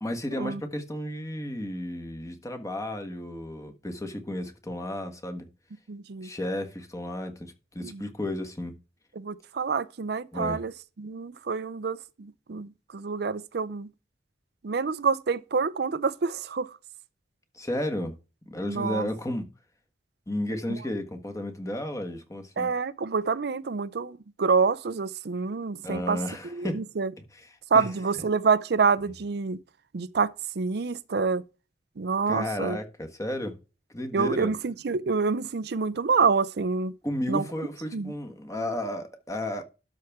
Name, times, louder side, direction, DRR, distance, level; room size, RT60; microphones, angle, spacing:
voice 1, 0.0-5.5 6.2-8.7 10.3-10.6 17.5-18.1 18.5-19.5 20.3-22.7 25.8-26.8 27.3-27.9 32.3-33.6 33.9-34.5 37.0-39.6, left 1 dB, 20° left, 1.5 m, -33 dB
voice 2, 5.9-6.3 7.8-8.0 9.2-10.7 11.0-13.9 14.6-16.7 18.7-19.1 20.7-20.8 22.6-26.2 26.5-27.1 27.7-29.6 29.9-31.4 32.0-32.8 34.1-36.9 37.3-37.4 37.9-38.1, right 5 dB, 65° right, 0.5 m, -27 dB
12.5 x 5.8 x 3.6 m
head